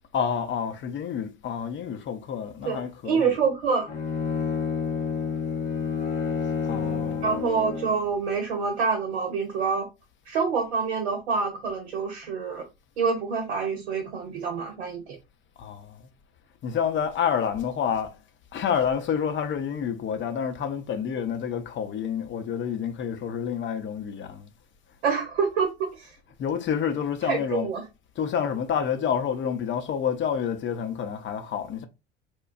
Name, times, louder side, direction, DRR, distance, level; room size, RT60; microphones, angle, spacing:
voice 1, 0.1-3.4 6.6-7.4 15.6-16.0 16.6-18.2 18.5-24.5 26.4-27.8 28.2-31.9, left 7 dB, 35° left, 0.7 m, -28 dB
voice 2, 2.6-3.9 7.2-9.9 10.3-12.6 13.0-15.2 25.0-26.1 27.3-27.8, right 5 dB, 80° right, 0.7 m, -26 dB
Bowed string instrument, 3.9-8.1, left 5 dB, 65° left, 1.1 m, -29 dB
4.3 x 2.2 x 2.5 m
hypercardioid pair, 70°, 32 cm